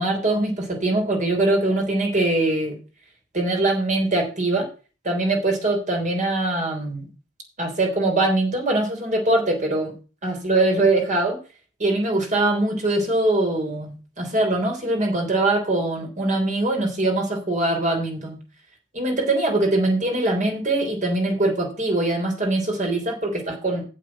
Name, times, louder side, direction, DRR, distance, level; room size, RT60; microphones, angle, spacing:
voice 1, 0.0-2.7 3.3-4.7 5.0-7.0 7.6-9.9 10.2-11.4 11.8-18.4 18.9-23.8, right 2 dB, 40° right, 2 dB, 3.5 m, -22 dB
8.3 x 7.5 x 5.9 m, 0.34 s
head